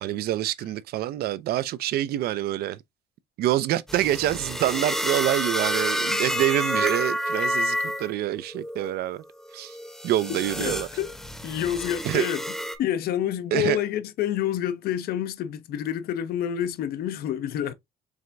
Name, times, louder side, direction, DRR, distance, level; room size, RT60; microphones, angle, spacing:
voice 1, 0.0-2.8 3.4-9.2 9.5-9.8 10.0-10.9 12.0-12.3 13.5-13.8, right 13 dB, 65° right, 0.5 m, -26 dB
sound 1, 3.9-8.1 8.5-8.9 9.6-12.8, equal, 5° left, 0.8 m, -29 dB
voice 2, 10.6-11.1 11.4-12.4 12.8-17.7, left 10 dB, 65° left, 0.6 m, -28 dB
4.8 x 3.3 x 2.5 m
cardioid pair, 110°, 17 cm